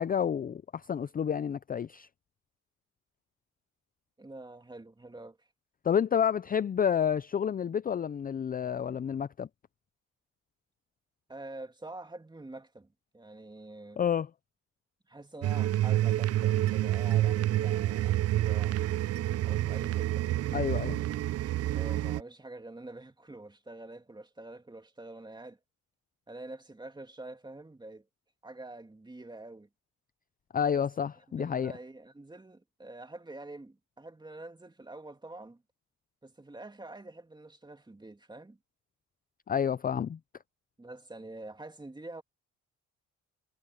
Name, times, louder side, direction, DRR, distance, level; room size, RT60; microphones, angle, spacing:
voice 1, 0.0-2.1 5.8-9.5 14.0-14.3 20.5-21.0 30.5-31.7 39.5-40.2, left 8 dB, 30° left, 0.5 m, -29 dB
voice 2, 4.2-5.4 11.3-12.9 13.1-14.1 15.1-18.9 19.4-20.7 21.6-25.6 26.3-28.0 28.4-29.7 30.7-30.9 31.4-35.6 36.2-38.6 40.8-42.2, right 2 dB, 15° right, 2.6 m, -46 dB
sound 1, 15.4-22.2, right 14 dB, 55° right, 0.5 m, -28 dB
cardioid pair, 90°, 30 cm